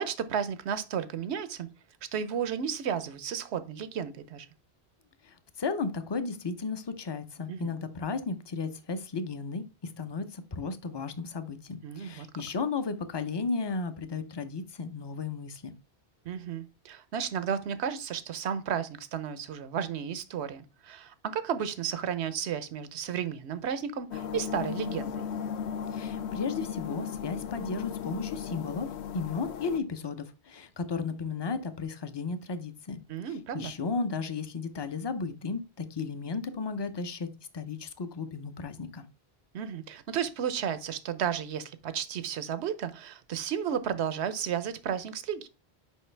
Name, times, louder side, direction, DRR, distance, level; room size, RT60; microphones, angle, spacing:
voice 1, 0.0-1.7 2.1-4.5 7.5-7.7 11.8-12.3 16.2-25.3 33.1-33.7 39.5-45.5, right 8 dB, 90° right, 1.0 m, -33 dB
voice 2, 5.2-9.6 10.0-15.7 25.9-28.9 29.1-33.0 33.5-37.3 37.5-39.1, left 4 dB, 30° left, 0.5 m, -34 dB
sound 1, 24.1-29.8, left 8 dB, 90° left, 0.9 m, -36 dB
6.4 x 5.1 x 3.2 m
omnidirectional pair, 1.1 m